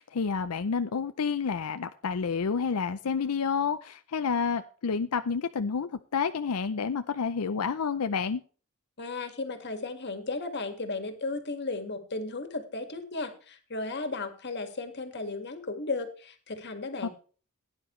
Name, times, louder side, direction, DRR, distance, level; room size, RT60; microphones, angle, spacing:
voice 1, 0.0-8.4 17.0-17.1, left 5 dB, 90° left, 10 dB, 0.5 m, -29 dB
voice 2, 9.0-17.1, left 3 dB, 50° left, 8 dB, 1.9 m, -35 dB
16.5 x 9.9 x 3.2 m, 0.40 s
head